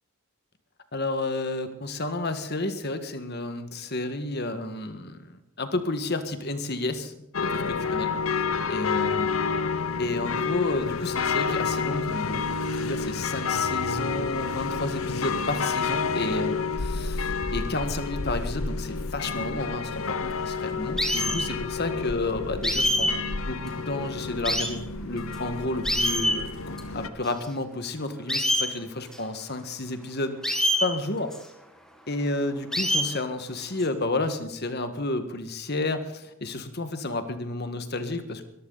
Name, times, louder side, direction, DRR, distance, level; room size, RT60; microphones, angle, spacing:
voice 1, 0.9-7.1 7.5-9.3 10.0-23.1 23.5-30.4 30.8-31.4 32.1-38.4, left 2 dB, 45° left, 8 dB, 1.7 m, -31 dB
sound 1, 7.3-27.1, left 5 dB, 70° left, 1.0 m, -29 dB
sound 2, 21.0-21.5 22.6-23.1 23.7-23.8 24.4-24.7 25.3-25.4 25.8-26.4 26.8-26.9 27.2-27.3 28.3-28.7 29.1-29.2 30.4-30.9 31.3-31.4 32.7-33.1 33.6-33.9, equal, 5° left, 2.0 m, -25 dB
22.5 x 14.0 x 4.1 m, 0.86 s
head